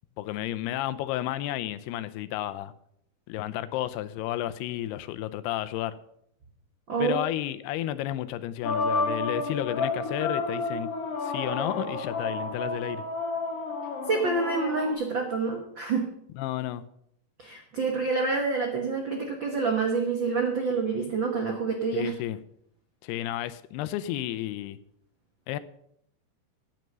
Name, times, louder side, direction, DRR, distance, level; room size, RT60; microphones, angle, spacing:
voice 1, 0.2-2.7 3.3-6.0 7.0-10.9 11.2-13.0 16.4-16.8 21.9-22.4 23.0-24.8 25.5-25.6, left 13 dB, 85° left, 2.7 m, -32 dB
voice 2, 6.9-7.2 14.1-16.1 17.4-22.1, right 4 dB, 90° right, 1.0 m, -27 dB
sound 1, 8.6-14.9, left 3 dB, 50° left, 2.0 m, -31 dB
9.4 x 9.1 x 6.7 m
omnidirectional pair, 4.6 m